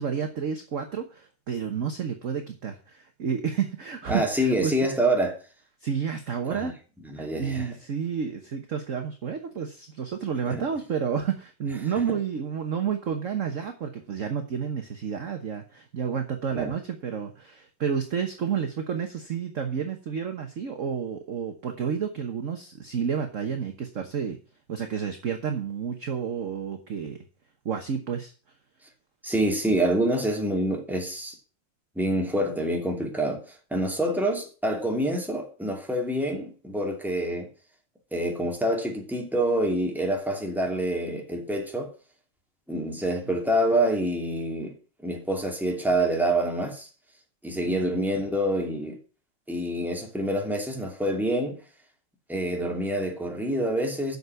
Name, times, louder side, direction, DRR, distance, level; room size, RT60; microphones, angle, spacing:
voice 1, 0.0-4.7 5.8-6.8 7.2-24.4 24.7-27.2 27.6-28.3 47.6-47.9, right 7 dB, 45° right, 1.2 m, -30 dB
voice 2, 4.1-5.3 6.5-6.7 7.0-7.7 10.5-10.6 16.5-16.7 29.2-31.3 32.0-33.4 33.7-37.5 38.1-41.9 42.7-44.8 45.0-46.9 47.4-49.0 49.5-51.6 52.3-54.2, right 1 dB, ahead, 2.6 m, -26 dB
8.2 x 6.8 x 7.7 m
omnidirectional pair, 2.2 m